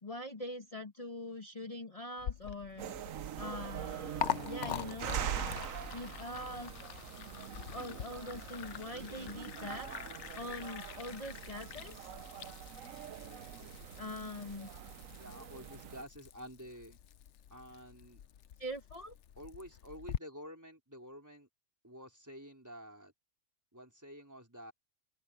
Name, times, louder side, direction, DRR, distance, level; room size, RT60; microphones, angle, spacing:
voice 1, 0.0-5.2 5.8-6.7 7.7-12.1 14.0-14.7 18.6-19.2, left 1 dB, 25° left, 1.6 m, -43 dB
Liquid, 2.2-20.2, left 10 dB, 65° left, 1.0 m, -44 dB
sound 1, 2.8-16.0, right 9 dB, 75° right, 1.2 m, -43 dB
voice 2, 15.2-17.0 17.5-18.2 19.4-21.5 21.8-23.1 23.7-24.7, equal, 15° right, 4.1 m, -50 dB
open air
omnidirectional pair, 1.4 m